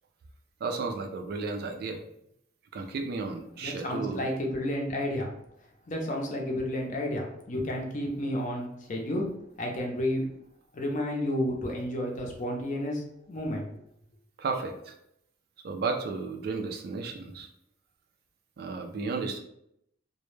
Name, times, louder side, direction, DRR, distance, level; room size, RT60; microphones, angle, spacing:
voice 1, 0.6-2.0 2.7-4.3 14.4-14.9 15.6-17.5 18.6-19.4, right 4 dB, 55° right, 4 dB, 0.3 m, -33 dB
voice 2, 3.6-5.3 5.9-9.3 9.6-10.2 10.7-13.7, left 1 dB, 45° left, 0 dB, 0.5 m, -31 dB
2.1 x 2.0 x 3.0 m, 0.76 s
head